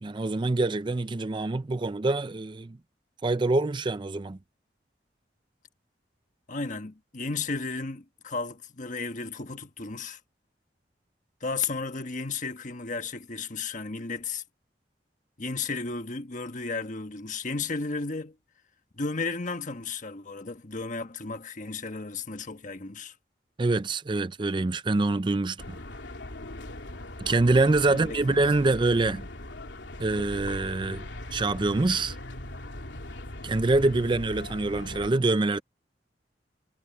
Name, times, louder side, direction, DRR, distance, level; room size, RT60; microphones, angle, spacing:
voice 1, 0.0-2.8 3.2-4.4 23.6-25.8 27.2-29.3 30.0-32.2 33.4-35.6, right 2 dB, 25° right, 0.5 m, -25 dB
voice 2, 6.5-10.2 11.4-14.4 15.4-18.3 19.0-23.1 27.8-28.7, left 4 dB, 45° left, 1.4 m, -34 dB
sound 1, 25.6-35.1, left 1 dB, 85° left, 3.1 m, -40 dB
head